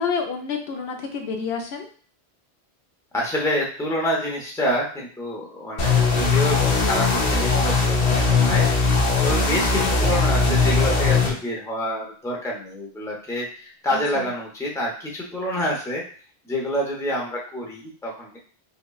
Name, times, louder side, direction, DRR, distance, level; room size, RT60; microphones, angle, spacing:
voice 1, 0.0-1.9 13.9-14.3, left 5 dB, 75° left, 3 dB, 0.9 m, -29 dB
voice 2, 3.1-8.7 9.2-16.0 16.4-18.4, equal, 5° left, -3 dB, 0.6 m, -27 dB
sound 1, 5.8-11.3, left 4 dB, 45° left, 0.7 m, -19 dB
5.2 x 2.2 x 2.3 m, 0.43 s
omnidirectional pair, 1.1 m